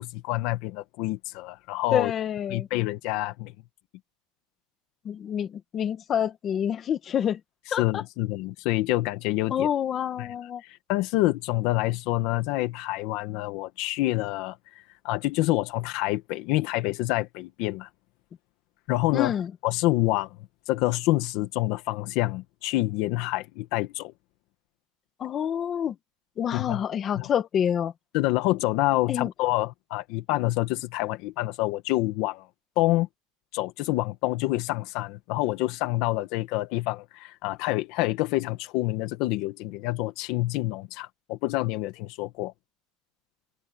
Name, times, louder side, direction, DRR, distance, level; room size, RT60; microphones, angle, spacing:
voice 1, 0.0-2.1 2.5-3.5 7.8-9.7 10.2-10.3 10.6-14.6 15.0-17.9 18.9-19.3 19.6-20.3 20.7-24.1 26.5-26.8 27.2-27.3 28.1-32.5 32.8-33.1 33.5-42.5, left 18 dB, 55° left, 1.6 m, -27 dB
voice 2, 1.9-2.7 5.0-7.4 7.7-8.0 9.5-10.6 19.1-19.5 25.2-25.9 26.4-27.9 29.1-29.3, left 9 dB, 25° left, 1.8 m, -27 dB
cardioid pair, 175°, 0 cm